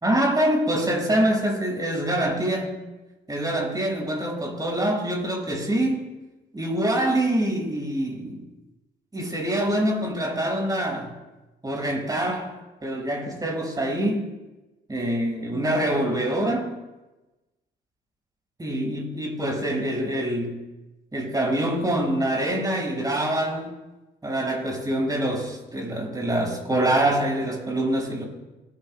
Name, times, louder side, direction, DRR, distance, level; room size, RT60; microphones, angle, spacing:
voice 1, 0.0-2.8 3.3-6.0 6.5-8.4 9.1-11.1 11.6-12.5 12.8-14.2 14.9-16.7 18.6-20.6 21.1-23.7 24.2-28.3, right 1 dB, 20° right, 0 dB, 5.3 m, -25 dB
28.5 x 12.0 x 2.2 m, 1.1 s
cardioid pair, 90°, 20 cm